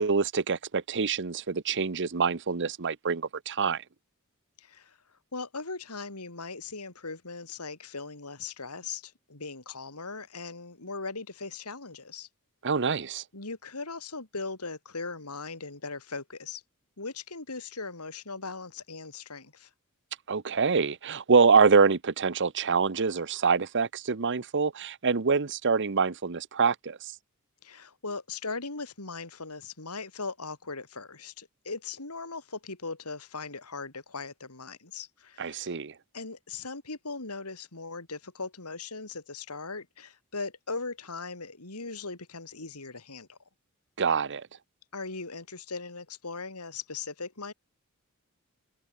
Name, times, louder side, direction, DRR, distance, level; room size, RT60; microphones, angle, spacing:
voice 1, 0.0-3.8 12.6-13.2 20.3-27.0 35.4-35.9 44.0-44.4, right 5 dB, 55° right, 0.9 m, -25 dB
voice 2, 4.6-5.0 5.3-12.3 13.3-16.6 17.0-19.7 27.6-35.8 36.1-43.4 44.9-47.5, left 4 dB, 90° left, 3.6 m, -39 dB
head